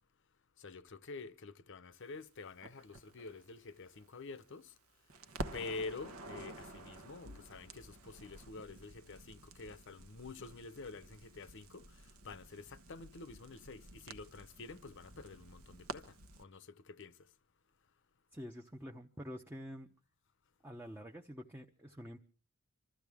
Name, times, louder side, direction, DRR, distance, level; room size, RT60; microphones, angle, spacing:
voice 1, 0.6-4.7 5.5-17.1, left 3 dB, 55° left, 0.8 m, -48 dB
Crackle, 2.6-4.8 5.1-16.4, right 2 dB, 75° right, 1.1 m, -50 dB
voice 2, 18.3-19.9 20.6-22.2, equal, 10° right, 0.7 m, -47 dB
25.5 x 14.0 x 3.5 m
head